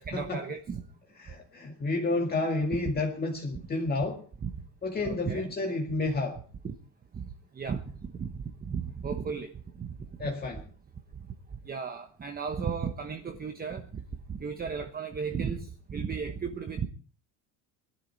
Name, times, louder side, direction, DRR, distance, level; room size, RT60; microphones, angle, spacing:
voice 1, 0.1-0.8 4.4-4.5 5.0-5.5 6.6-6.7 7.1-7.2 7.5-9.5 9.8-9.9 11.6-14.0 14.3-16.9, right 6 dB, 25° right, 1.2 m, -34 dB
voice 2, 1.2-4.2 4.8-6.4 10.2-10.6, left 2 dB, 25° left, 2.1 m, -30 dB
21.0 x 12.0 x 4.5 m
cardioid pair, 135°, 38 cm